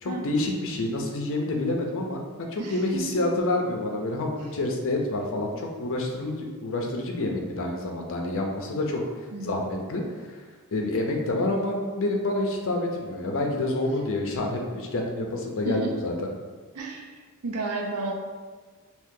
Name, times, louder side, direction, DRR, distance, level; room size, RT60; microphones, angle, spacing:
voice 1, 0.0-9.0 9.4-10.0 10.3-10.4 10.7-16.3, left 2 dB, 60° left, 1 dB, 0.6 m, -28 dB
voice 2, 2.6-3.3 9.3-9.7 15.7-16.0 16.7-17.1 17.4-18.1, right 3 dB, 85° right, 2 dB, 0.5 m, -32 dB
2.8 x 2.7 x 3.6 m, 1.5 s
head